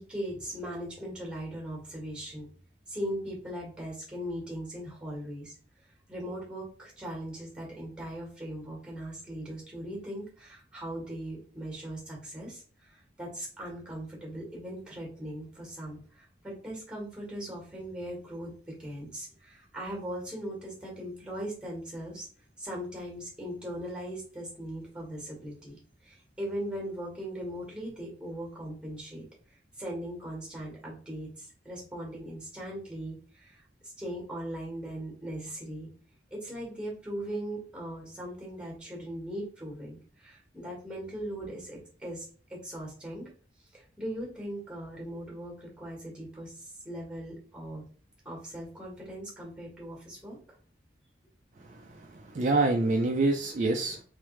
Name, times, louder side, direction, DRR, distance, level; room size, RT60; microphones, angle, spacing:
voice 1, 0.0-2.5 2.9-5.5 6.1-22.3 22.6-35.9 36.3-43.3 43.7-47.8 48.2-50.4, right 1 dB, 5° right, -2 dB, 1.4 m, -39 dB
voice 2, 51.6-54.0, right 2 dB, 40° right, 2 dB, 0.4 m, -27 dB
3.5 x 3.4 x 3.1 m, 0.42 s
head